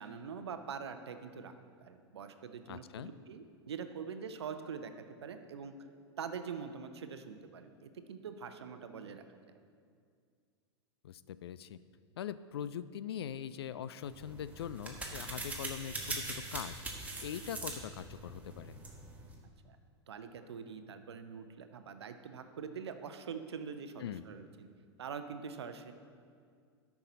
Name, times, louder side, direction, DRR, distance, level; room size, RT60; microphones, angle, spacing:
voice 1, 0.0-1.5 1.8-4.9 5.2-5.7 6.2-9.5 19.6-19.8 20.1-24.7 25.0-25.9, right 6 dB, 70° right, 9 dB, 0.7 m, -44 dB
voice 2, 2.7-3.1 11.0-11.8 12.2-16.8 17.2-18.8 24.0-24.2, left 9 dB, 65° left, 15 dB, 0.4 m, -42 dB
sound 1, 14.0-19.4, right 2 dB, 10° right, 1.3 m, -42 dB
13.0 x 5.9 x 4.0 m, 2.2 s
figure-of-eight pair, 95°, 14 cm